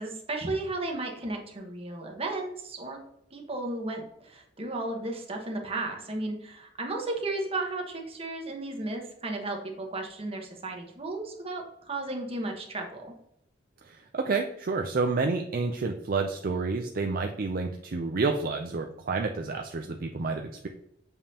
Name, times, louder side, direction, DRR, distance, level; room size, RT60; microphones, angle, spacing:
voice 1, 0.0-3.0 3.3-13.1, right 2 dB, 30° right, 1 dB, 1.2 m, -34 dB
voice 2, 13.8-20.7, right 4 dB, 50° right, 4 dB, 0.5 m, -29 dB
7.1 x 5.3 x 2.8 m, 0.75 s
head